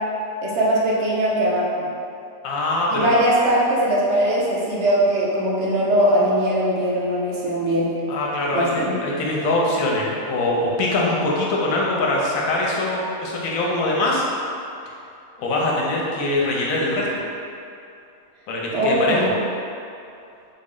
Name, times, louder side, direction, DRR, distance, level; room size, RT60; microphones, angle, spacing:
voice 1, 0.4-1.9 2.9-7.9 8.5-9.0 18.7-19.3, right 1 dB, 60° right, -5 dB, 0.8 m, -20 dB
voice 2, 2.4-3.1 8.1-14.2 15.4-17.1 18.5-19.3, left 2 dB, 75° left, -3 dB, 1.0 m, -23 dB
3.8 x 2.1 x 3.6 m, 2.6 s
omnidirectional pair, 1.5 m